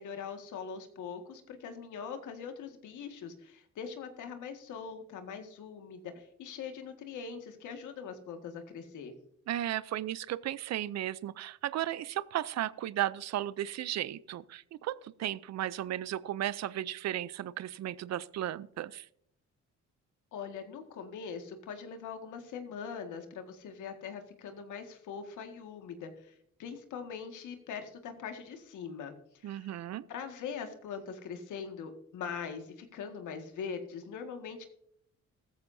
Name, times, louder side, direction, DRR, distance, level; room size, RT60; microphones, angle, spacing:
voice 1, 0.0-9.1 20.3-29.8 30.1-34.7, left 6 dB, 80° left, 6 dB, 1.9 m, -42 dB
voice 2, 9.5-19.0 29.4-30.0, right 12 dB, 60° right, 19 dB, 0.6 m, -35 dB
14.5 x 13.5 x 2.7 m, 0.72 s
cardioid pair, 90°, 30 cm